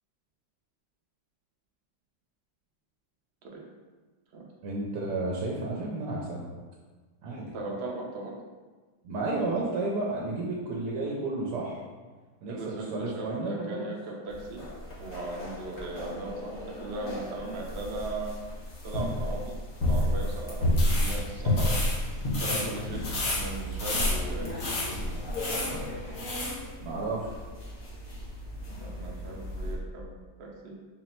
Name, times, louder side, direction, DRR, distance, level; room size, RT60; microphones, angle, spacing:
voice 1, 4.6-6.5 7.2-7.4 9.0-11.8 12.4-13.9 26.8-27.4, right 2 dB, 75° right, -3 dB, 1.1 m, -32 dB
voice 2, 7.4-8.4 12.5-14.6 15.0-18.4 18.8-21.7 22.3-23.0 23.3-25.2 28.8-30.1 30.4-30.7, right 2 dB, 60° right, -1 dB, 0.7 m, -38 dB
sound 1, 14.3-29.7, left 1 dB, 45° left, 0.8 m, -32 dB
sound 2, 20.7-26.6, left 2 dB, 85° left, 1.7 m, -34 dB
3.9 x 2.0 x 4.2 m, 1.3 s
omnidirectional pair, 1.8 m